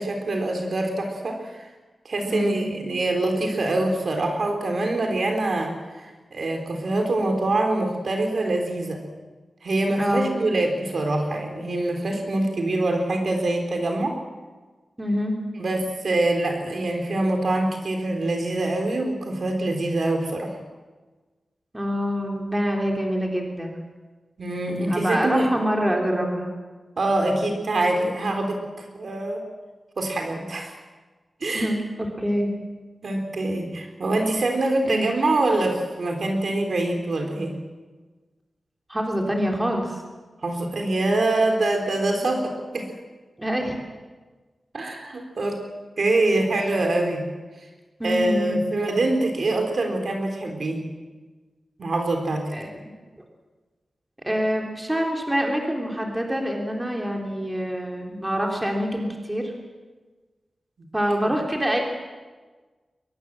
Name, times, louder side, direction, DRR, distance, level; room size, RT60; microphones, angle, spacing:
voice 1, 0.0-1.7 2.1-9.0 9.6-14.2 15.6-20.6 24.4-25.5 27.0-29.4 30.0-30.7 31.4-31.7 33.0-37.6 40.4-42.9 44.7-45.6 46.0-47.3 48.0-50.9 51.8-52.5 60.8-60.9, right 2 dB, 55° right, 3 dB, 3.6 m, -24 dB
voice 2, 2.3-2.7 10.0-10.3 15.0-15.4 21.7-23.8 24.7-26.5 31.5-32.5 34.8-35.1 38.9-40.0 42.2-42.4 43.4-43.8 48.0-48.6 52.5-52.9 54.3-59.5 60.9-61.8, equal, 10° right, 1 dB, 3.5 m, -25 dB
22.0 x 21.0 x 7.6 m, 1.3 s
wide cardioid pair, 140°, 0 cm